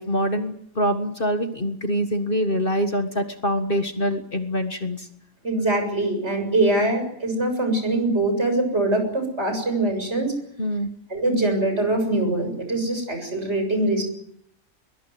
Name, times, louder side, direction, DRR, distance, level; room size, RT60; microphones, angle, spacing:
voice 1, 0.0-5.1 10.6-10.9, equal, 40° left, 7 dB, 1.8 m, -25 dB
voice 2, 5.4-10.3 11.1-14.0, right 2 dB, 50° right, 6 dB, 7.5 m, -23 dB
22.5 x 22.0 x 9.3 m, 0.73 s
omnidirectional pair, 1.4 m